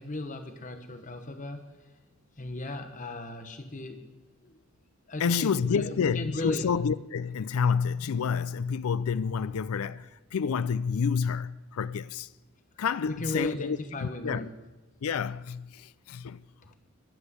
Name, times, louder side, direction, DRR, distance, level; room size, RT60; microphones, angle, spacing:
voice 1, 0.0-1.6 2.4-4.0 4.4-4.6 5.1-6.7 12.7-14.5 16.7-16.8, left 1 dB, 35° left, 1.1 m, -36 dB
voice 2, 5.2-12.3 12.8-14.5 15.0-16.4, left 6 dB, 75° left, 0.4 m, -29 dB
21.0 x 8.3 x 8.2 m
head